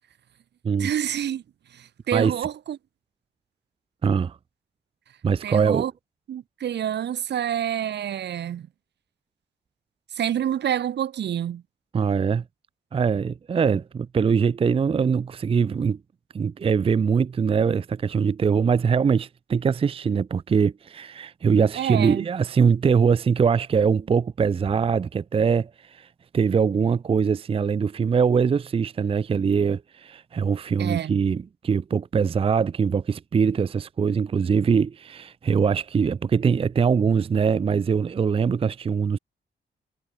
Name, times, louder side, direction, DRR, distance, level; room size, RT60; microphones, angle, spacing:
voice 1, 0.8-1.4 1.7-2.8 5.4-5.9 6.3-8.7 10.1-11.6 21.8-22.3 30.8-31.2, right 10 dB, 65° right, 1.1 m, -27 dB
voice 2, 4.0-4.4 5.2-5.8 11.9-12.4 12.9-16.0 16.3-26.1 26.3-39.2, right 6 dB, 30° right, 0.5 m, -22 dB
wide cardioid pair, 145°, 19 cm